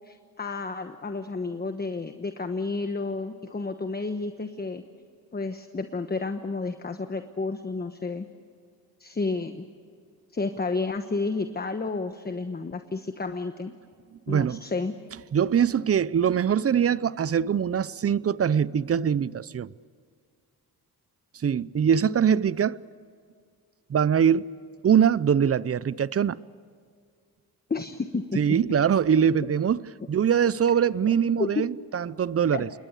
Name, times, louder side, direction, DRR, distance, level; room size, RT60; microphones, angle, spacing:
voice 1, 0.0-4.8 5.3-8.3 9.0-9.6 10.3-13.7 14.3-15.0 27.7-28.4 31.0-31.6 32.5-32.7, left 3 dB, 25° left, 1.2 m, -31 dB
voice 2, 14.3-14.6 15.3-19.7 21.4-22.8 23.9-24.5 24.8-26.4 28.4-29.8 30.1-32.7, right 8 dB, 40° right, 0.6 m, -23 dB
28.0 x 21.5 x 8.3 m
cardioid pair, 100°, 37 cm